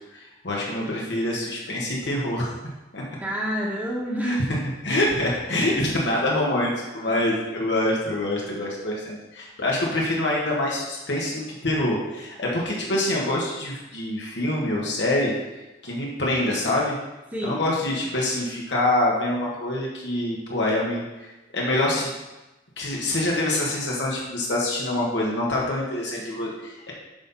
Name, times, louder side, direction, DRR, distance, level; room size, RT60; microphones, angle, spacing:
voice 1, 0.1-2.5 2.9-3.0 4.2-4.6 4.8-15.3 15.8-16.9 17.4-22.1 22.8-26.9, left 1 dB, 90° left, -3 dB, 1.7 m, -25 dB
voice 2, 3.2-4.4 5.6-5.9 7.0-7.3 17.3-17.7, equal, 10° right, -7 dB, 1.1 m, -29 dB
8.9 x 5.7 x 4.2 m, 1.0 s
head